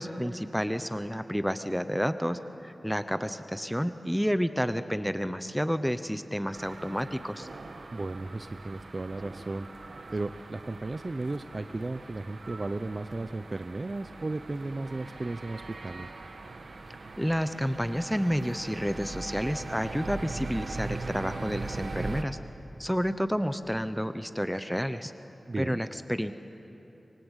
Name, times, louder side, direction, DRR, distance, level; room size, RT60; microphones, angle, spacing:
voice 1, 0.0-7.5 17.2-22.4 22.8-25.1 25.6-26.3, equal, ahead, 10 dB, 0.9 m, -30 dB
sound 1, 6.5-22.2, right 3 dB, 70° right, 1.6 m, -41 dB
voice 2, 7.9-9.7 10.1-16.1 25.5-25.8, right 2 dB, 40° right, 9 dB, 0.7 m, -35 dB
26.5 x 23.5 x 8.2 m, 3.0 s
wide cardioid pair, 65°, 0 cm